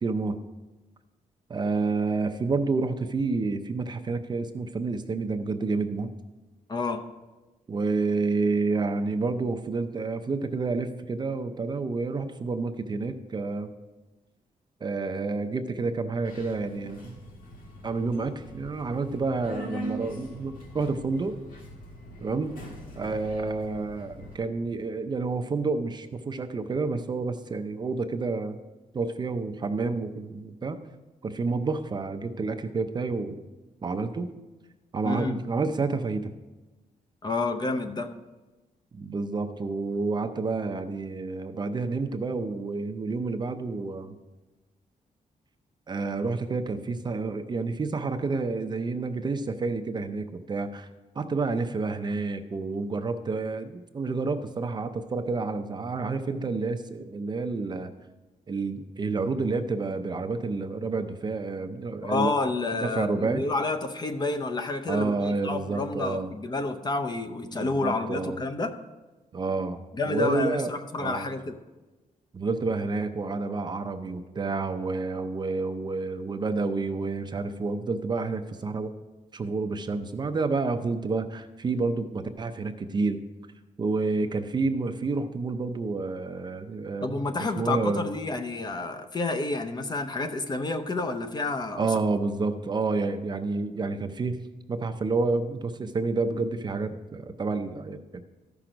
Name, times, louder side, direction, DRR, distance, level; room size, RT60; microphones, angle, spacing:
voice 1, 0.0-0.4 1.5-6.1 7.7-13.7 14.8-17.2 17.8-21.4 22.2-22.5 23.0-28.6 28.9-30.8 31.2-33.4 33.8-34.3 34.9-36.3 38.9-44.2 45.9-50.9 51.2-57.9 58.5-62.3 62.7-63.4 64.9-66.3 67.5-68.4 69.3-70.7 71.0-71.3 72.3-78.9 79.3-83.2 83.8-88.1 91.8-94.4 94.7-98.2, right 3 dB, 30° right, 7 dB, 0.5 m, -29 dB
voice 2, 6.7-7.0 35.0-35.4 37.2-38.1 62.0-68.7 69.9-71.6 87.0-91.9, left 3 dB, 30° left, 7 dB, 0.7 m, -29 dB
Subway metro underground, 16.2-24.4, equal, 85° left, 1.8 m, -42 dB
14.0 x 6.0 x 5.0 m, 1.2 s
wide cardioid pair, 160°, 14 cm